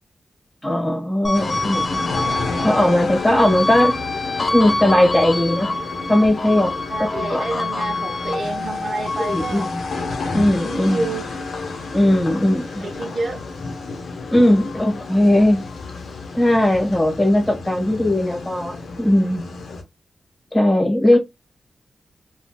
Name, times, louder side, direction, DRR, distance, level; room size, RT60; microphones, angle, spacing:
voice 1, 0.6-2.1 2.6-3.9 4.5-5.7 6.1-6.7 7.1-7.5 9.2-9.7 10.3-11.1 11.9-12.9 14.3-15.6 16.3-19.5 20.5-21.2, left 1 dB, 20° left, 1.2 m, -18 dB
sound 1, 1.2-13.9 14.3-16.0, left 2 dB, 50° left, 0.7 m, -28 dB
sound 2, 1.3-19.8, left 3 dB, 85° left, 0.8 m, -31 dB
voice 2, 6.9-9.7 10.6-11.3 12.8-13.4 21.1-21.2, right 3 dB, 60° right, 0.6 m, -28 dB
3.6 x 2.3 x 2.3 m
cardioid pair, 80°, 0 cm